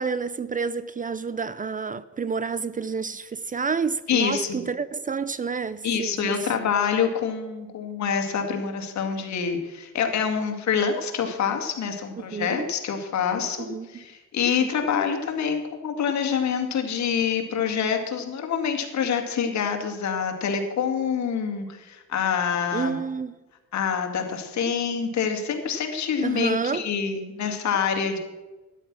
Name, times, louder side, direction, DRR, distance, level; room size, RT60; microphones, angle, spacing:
voice 1, 0.0-6.3 12.2-12.7 13.6-14.0 14.6-14.7 22.7-23.3 26.2-26.9, right 5 dB, 25° right, 0.5 m, -29 dB
voice 2, 4.1-4.6 5.8-23.0 23.7-28.2, left 7 dB, 65° left, 2.3 m, -26 dB
12.5 x 10.5 x 6.1 m
cardioid pair, 90°, 30 cm